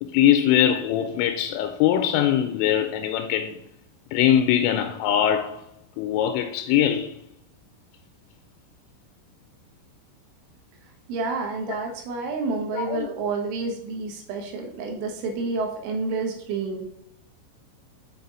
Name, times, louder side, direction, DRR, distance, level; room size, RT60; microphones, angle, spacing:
voice 1, 0.0-3.6 4.1-5.6 6.0-7.2 12.7-13.1, left 10 dB, 85° left, 3.1 m, -22 dB
voice 2, 11.1-16.9, right 4 dB, 75° right, 3.6 m, -29 dB
7.5 x 5.6 x 3.9 m
omnidirectional pair, 5.7 m